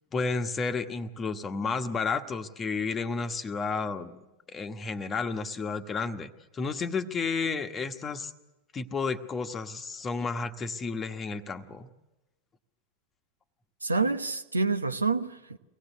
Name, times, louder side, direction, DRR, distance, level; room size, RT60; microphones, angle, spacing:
voice 1, 0.1-4.2 4.5-8.3 8.7-11.9, left 4 dB, 20° left, 8 dB, 1.3 m, -32 dB
voice 2, 13.8-15.6, right 3 dB, 80° right, 9 dB, 1.0 m, -27 dB
24.5 x 18.0 x 8.1 m, 1.0 s
figure-of-eight pair, 90°, 0 cm